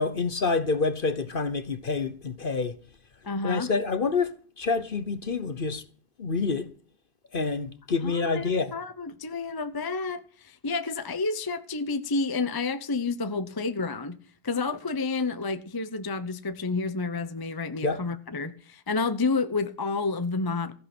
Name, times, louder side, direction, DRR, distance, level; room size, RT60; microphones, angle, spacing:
voice 1, 0.0-2.8 3.4-5.8 6.2-6.7 7.3-8.7 17.8-18.0, left 4 dB, 40° left, 1.0 m, -27 dB
voice 2, 3.2-3.7 8.0-20.7, left 3 dB, 20° left, 0.6 m, -30 dB
15.0 x 10.5 x 6.1 m
omnidirectional pair, 1.7 m